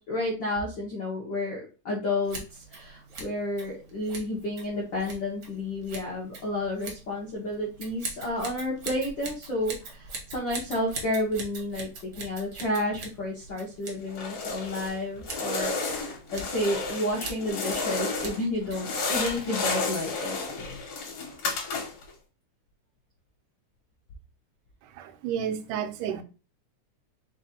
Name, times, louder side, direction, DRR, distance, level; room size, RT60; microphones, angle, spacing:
voice 1, 0.1-11.9 12.2-20.4, left 1 dB, 75° left, 1.0 m, -31 dB
Scissors, 2.2-19.7, right 3 dB, 65° right, 1.0 m, -43 dB
sound 1, 14.1-15.0 15.2-18.4 18.7-22.1, left 3 dB, 60° left, 1.8 m, -32 dB
voice 2, 24.9-26.2, right 8 dB, 90° right, 2.1 m, -31 dB
4.8 x 2.5 x 4.1 m
omnidirectional pair, 3.6 m